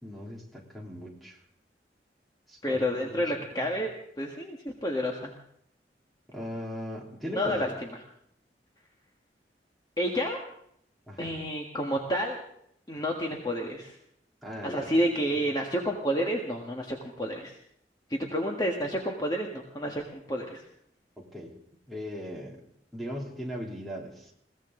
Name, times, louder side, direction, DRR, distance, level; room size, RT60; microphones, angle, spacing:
voice 1, 0.0-1.4 2.5-3.2 3.5-3.8 6.3-7.8 11.1-11.4 14.4-14.9 15.1-15.4 21.2-21.6 21.9-22.6 22.9-24.3, equal, ahead, -2 dB, 3.3 m, -39 dB
voice 2, 2.6-3.9 4.2-5.3 7.3-7.7 10.0-10.4 11.2-12.4 12.9-14.0 14.6-17.6 18.1-20.6, equal, 25° left, 0 dB, 1.6 m, -30 dB
21.5 x 17.5 x 3.8 m, 0.72 s
head